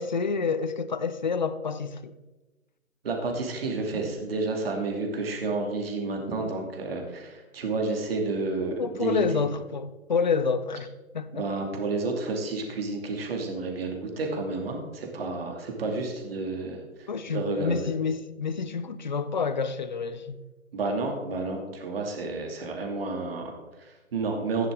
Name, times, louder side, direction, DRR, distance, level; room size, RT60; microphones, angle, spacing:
voice 1, 0.0-2.1 8.8-11.5 17.1-20.4, left 5 dB, 35° left, 0.6 m, -28 dB
voice 2, 3.0-9.4 11.3-17.9 20.7-24.7, right 3 dB, 45° right, 2.6 m, -31 dB
14.5 x 11.0 x 3.7 m
figure-of-eight pair, 150°, 41 cm